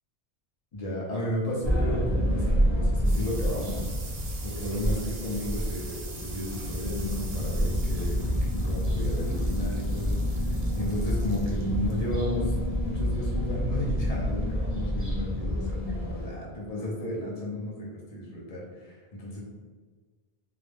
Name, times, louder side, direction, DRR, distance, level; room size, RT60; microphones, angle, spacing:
voice 1, 0.7-3.9 4.4-19.4, equal, 40° left, -4 dB, 0.7 m, -34 dB
sound 1, 1.6-16.3, equal, 15° right, 0.8 m, -28 dB
sound 2, 2.5-13.6, right 3 dB, 65° right, 0.7 m, -46 dB
2.4 x 2.1 x 3.2 m, 1.4 s
omnidirectional pair, 1.1 m